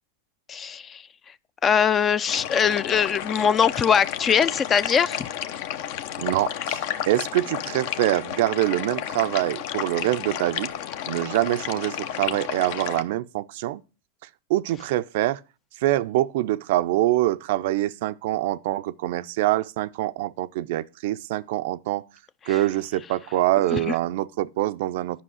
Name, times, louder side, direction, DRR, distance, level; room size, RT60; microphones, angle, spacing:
voice 1, 0.5-1.0 1.6-5.3 22.5-22.6 23.7-23.9, left 7 dB, 25° left, 0.4 m, -22 dB
sound 1, 2.3-13.0, left 10 dB, 55° left, 0.7 m, -32 dB
voice 2, 6.2-10.7 11.1-13.8 14.5-15.4 15.8-22.0 22.5-25.2, right 15 dB, 60° right, 0.4 m, -25 dB
10.0 x 5.6 x 6.1 m
hypercardioid pair, 125°, 0 cm